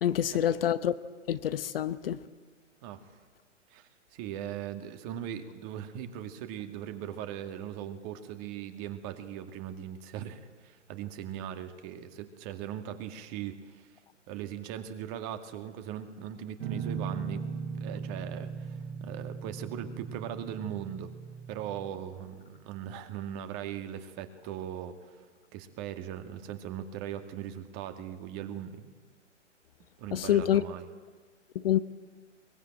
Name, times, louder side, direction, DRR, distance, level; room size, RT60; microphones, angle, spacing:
voice 1, 0.0-0.9 1.3-2.2 30.1-30.6 31.5-31.8, left 11 dB, 50° left, 1.0 m, -26 dB
voice 2, 3.7-13.9 14.3-17.4 17.8-21.1 21.5-25.3 25.5-28.8 30.0-30.9, right 10 dB, 30° right, 2.2 m, -39 dB
Guitar, 16.6-21.9, right 6 dB, 60° right, 6.6 m, -38 dB
23.0 x 21.5 x 8.9 m
figure-of-eight pair, 120°, 37 cm